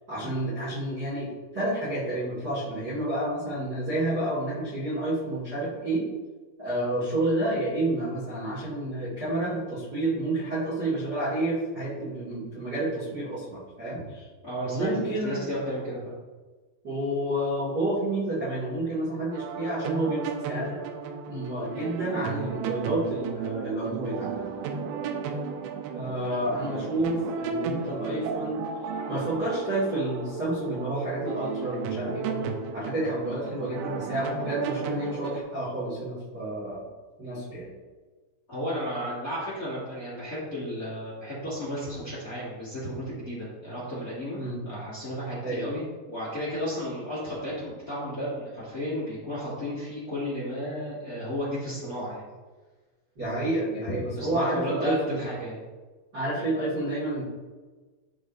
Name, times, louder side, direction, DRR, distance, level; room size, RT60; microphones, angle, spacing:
voice 1, 0.1-6.0 6.6-14.3 14.6-15.4 16.8-20.8 21.3-24.4 25.9-28.6 29.1-36.8 37.2-37.7 44.4-44.6 45.4-45.6 53.2-55.2 56.1-57.2, right 1 dB, 35° right, -10 dB, 1.9 m, -29 dB
voice 2, 14.4-16.1 38.5-44.4 44.6-52.2 54.2-55.6, equal, 25° left, -9 dB, 2.2 m, -33 dB
sound 1, 19.3-35.4, right 5 dB, 85° right, 3.0 m, -34 dB
13.5 x 4.8 x 2.7 m, 1.3 s
omnidirectional pair, 5.2 m